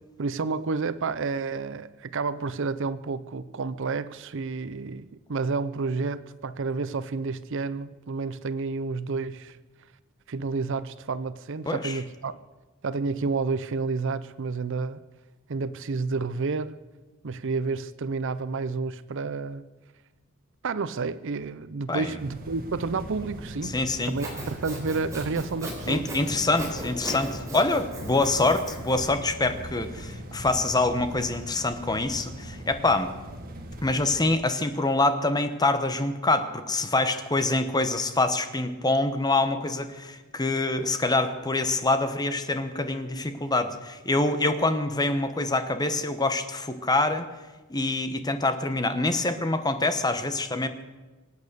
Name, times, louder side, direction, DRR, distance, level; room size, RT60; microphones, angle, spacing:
voice 1, 0.2-9.6 10.3-12.4 12.8-15.0 15.5-16.8 17.2-19.7 20.6-23.8 24.1-26.0, right 4 dB, 60° right, 15 dB, 0.6 m, -30 dB
voice 2, 11.7-12.0 21.9-22.2 23.6-24.1 25.9-33.1 33.8-47.3 47.7-50.7, left 2 dB, 20° left, 9 dB, 1.0 m, -25 dB
sound 1, 22.2-34.2, equal, 45° right, 1.6 m, -40 dB
Sawing, 24.0-29.1, right 1 dB, 15° right, 4.0 m, -38 dB
24.5 x 8.4 x 6.8 m, 1.2 s
head